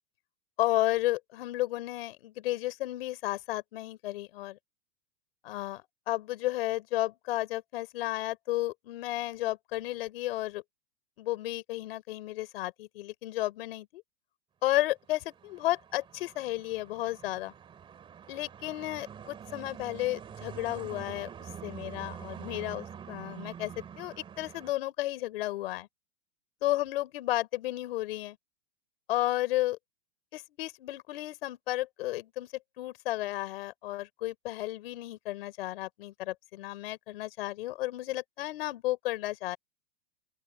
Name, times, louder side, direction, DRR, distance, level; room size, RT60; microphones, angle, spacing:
voice 1, 0.6-4.6 5.4-10.6 11.2-14.0 14.6-17.5 18.3-21.3 21.6-25.9 26.6-28.4 29.1-29.8 30.3-32.5 32.8-39.6, left 16 dB, 50° left, 3.8 m, -33 dB
sound 1, 15.1-24.7, right 8 dB, 15° right, 2.7 m, -46 dB
open air
supercardioid pair, 165°, 37 cm